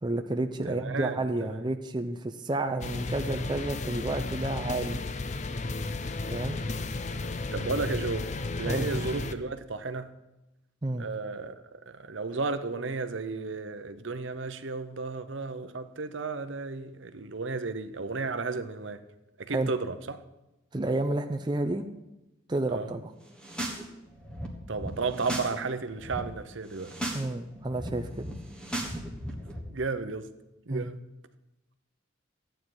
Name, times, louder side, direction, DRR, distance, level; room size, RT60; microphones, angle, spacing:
voice 1, 0.0-5.0 6.3-6.6 8.7-9.0 10.8-11.1 19.5-19.7 20.7-21.8 22.5-23.1 27.1-28.3 30.7-30.9, right 2 dB, 20° right, 0.6 m, -30 dB
voice 2, 0.6-1.6 7.5-8.3 8.6-10.1 11.0-11.5 11.9-19.0 19.4-20.2 22.7-22.9 24.7-27.0 29.7-30.3 30.7-31.0, right 4 dB, 70° right, 0.8 m, -33 dB
sound 1, 2.8-9.3, left 3 dB, 35° left, 0.5 m, -33 dB
sound 2, 23.3-23.8 24.1-25.5 25.8-26.2 26.7-27.2 27.5-29.6, right 1 dB, 5° left, 1.4 m, -36 dB
14.0 x 9.0 x 4.8 m
head